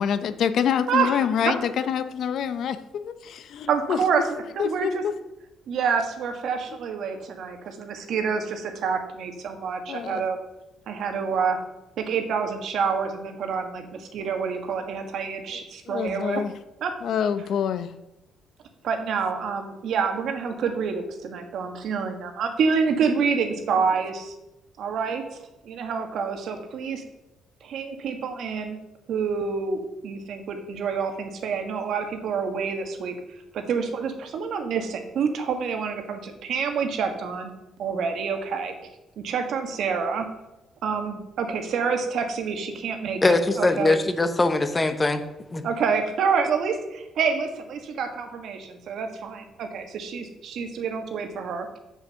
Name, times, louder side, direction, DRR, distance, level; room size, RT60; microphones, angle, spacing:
voice 1, 0.0-4.0 4.6-5.1 9.9-10.2 15.9-16.5 17.0-17.9, left 8 dB, 60° left, 0.7 m, -26 dB
voice 2, 3.7-5.0 5.7-10.4 10.9-11.6 12.0-16.4 16.8-16.9 18.8-24.3 24.8-25.4 25.6-27.0 27.6-28.8 29.1-33.1 33.5-37.5 37.8-38.7 39.2-40.3 40.8-44.0 45.6-51.7, right 5 dB, 60° right, 1.5 m, -27 dB
voice 3, 43.2-45.2 45.5-45.6, left 2 dB, 15° left, 0.8 m, -21 dB
7.7 x 6.5 x 6.4 m
cardioid pair, 155°, 0 cm